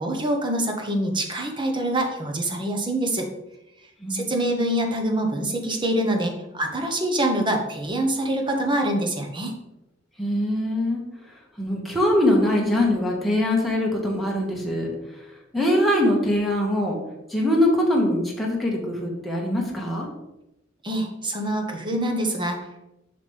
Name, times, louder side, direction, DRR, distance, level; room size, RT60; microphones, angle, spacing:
voice 1, 0.0-3.3 4.1-9.5 20.8-22.9, right 1 dB, 25° right, 3 dB, 1.1 m, -25 dB
voice 2, 10.2-11.0 11.6-14.9 15.5-17.0 17.3-20.1, left 1 dB, ahead, -3 dB, 1.6 m, -22 dB
7.2 x 5.9 x 3.4 m, 0.91 s
head